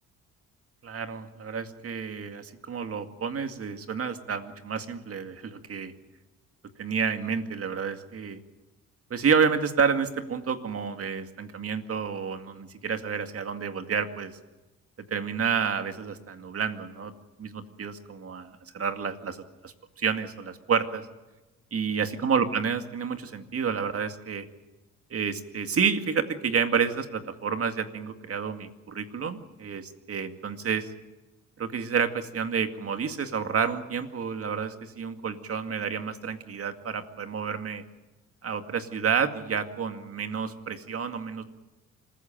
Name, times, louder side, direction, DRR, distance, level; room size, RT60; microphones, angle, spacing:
voice 1, 0.8-5.9 6.8-8.4 9.1-14.3 15.1-17.1 17.4-21.1 21.7-24.5 25.1-30.9 31.6-37.8 38.4-41.4, right 6 dB, 50° right, 8 dB, 2.2 m, -29 dB
26.0 x 15.0 x 9.0 m, 1.1 s
cardioid pair, 90°, 30 cm